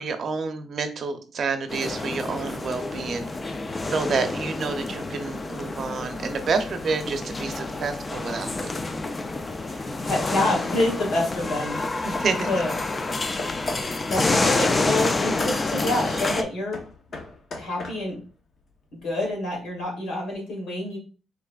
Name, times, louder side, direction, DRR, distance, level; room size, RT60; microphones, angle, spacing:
voice 1, 0.0-3.3 3.9-8.7 9.7-9.8 12.0-12.5, right 4 dB, 55° right, 7 dB, 0.6 m, -29 dB
sound 1, 1.7-16.4, left 2 dB, 25° left, 0.4 m, -28 dB
voice 2, 10.0-12.1 12.5-12.7 14.1-16.8 17.6-18.2 19.0-21.0, left 2 dB, 80° left, -2 dB, 2.0 m, -27 dB
Hammer / Wood, 10.4-10.9 11.5-14.0 14.6-18.3, left 2 dB, 50° left, 0.8 m, -37 dB
3.7 x 3.3 x 2.4 m, 0.36 s
cardioid pair, 90°, 0 cm